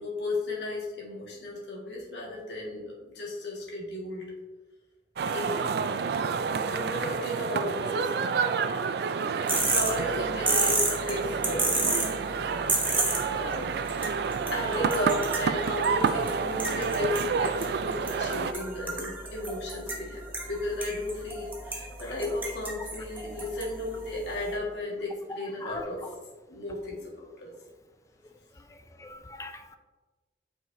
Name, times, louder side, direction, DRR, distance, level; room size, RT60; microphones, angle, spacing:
voice 1, 0.0-4.3 5.3-5.7 6.5-8.1 9.6-12.2 12.5-12.9 13.3-13.7 14.5-20.2 20.5-26.0 26.5-27.5, left 1 dB, 80° left, 1.6 m, -34 dB
sound 1, 5.2-18.5, right 5 dB, 60° right, 0.3 m, -29 dB
sound 2, 9.5-24.5, right 2 dB, 10° right, 0.8 m, -33 dB
voice 2, 29.0-29.8, left 3 dB, 15° left, 0.4 m, -40 dB
8.1 x 4.8 x 2.6 m
head